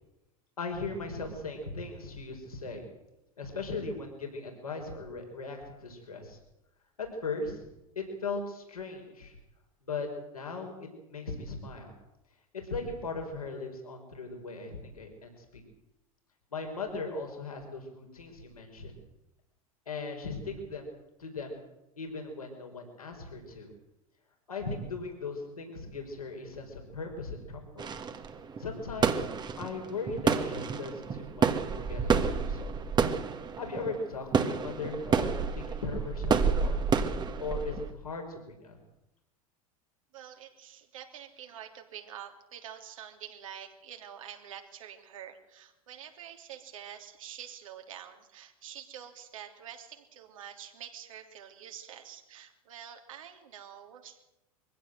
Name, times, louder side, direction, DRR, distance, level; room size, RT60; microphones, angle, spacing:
voice 1, 0.6-2.8 3.4-6.4 7.0-7.6 7.9-9.4 9.8-11.9 12.5-15.6 16.5-18.9 19.9-20.9 21.2-21.6 22.0-23.7 24.5-27.9 28.6-29.3 29.6-32.7 33.6-36.8 37.4-38.8, left 3 dB, 80° left, 2 dB, 5.0 m, -38 dB
sound 1, 27.8-37.9, right 5 dB, 25° right, 1.7 m, -29 dB
voice 2, 40.1-54.2, right 9 dB, 65° right, 4 dB, 3.2 m, -47 dB
23.5 x 16.5 x 7.9 m, 0.91 s
figure-of-eight pair, 85°, 18 cm